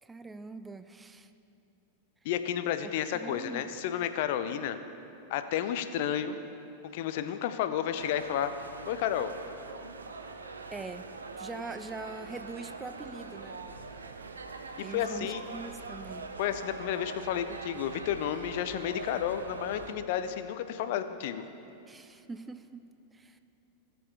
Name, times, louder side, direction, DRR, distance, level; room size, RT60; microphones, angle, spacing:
voice 1, 0.0-1.3 3.1-3.7 10.7-11.1 11.4-13.6 14.8-16.3 21.9-23.4, right 3 dB, 10° right, 11 dB, 0.4 m, -43 dB
voice 2, 2.2-4.8 5.3-6.3 6.9-8.5 8.9-9.3 14.9-15.4 16.4-21.4, left 10 dB, 50° left, 10 dB, 0.5 m, -31 dB
sound 1, 7.9-19.9, right 4 dB, 75° right, 0.6 m, -43 dB
18.0 x 6.9 x 3.5 m, 2.9 s
figure-of-eight pair, 90°, 0 cm